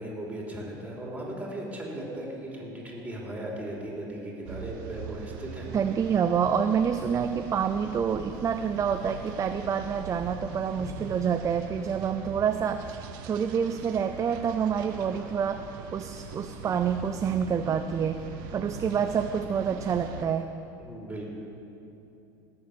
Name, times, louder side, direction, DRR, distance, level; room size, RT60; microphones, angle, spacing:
voice 1, 0.0-5.7 10.8-10.9 20.8-21.2, right 1 dB, 15° right, -3 dB, 3.7 m, -37 dB
sound 1, 4.4-20.3, right 5 dB, 75° right, 1.1 m, -42 dB
voice 2, 5.7-18.2 18.5-20.5, right 7 dB, 30° right, 8 dB, 0.5 m, -27 dB
17.5 x 7.1 x 6.8 m, 2.9 s
supercardioid pair, 105°, 11 cm